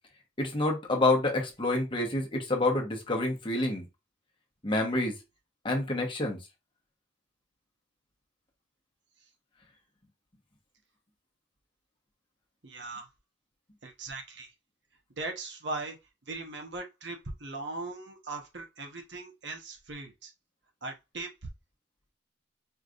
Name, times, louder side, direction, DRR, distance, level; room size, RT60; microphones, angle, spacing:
voice 1, 0.4-3.8 4.6-5.1 5.6-6.4, left 2 dB, 25° left, 1.2 m, -28 dB
voice 2, 12.6-13.1 13.8-14.5 15.2-16.0 16.3-20.3 20.8-21.3, right 3 dB, 65° right, 1.2 m, -39 dB
4.7 x 3.2 x 2.5 m
head